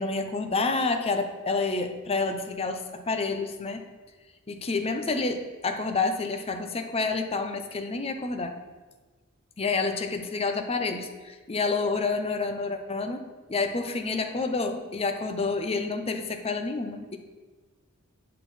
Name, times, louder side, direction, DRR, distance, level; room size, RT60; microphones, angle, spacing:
voice 1, 0.0-3.8 4.5-8.5 9.6-17.2, left 3 dB, 25° left, 6 dB, 0.7 m, -29 dB
7.9 x 6.3 x 4.2 m, 1.3 s
head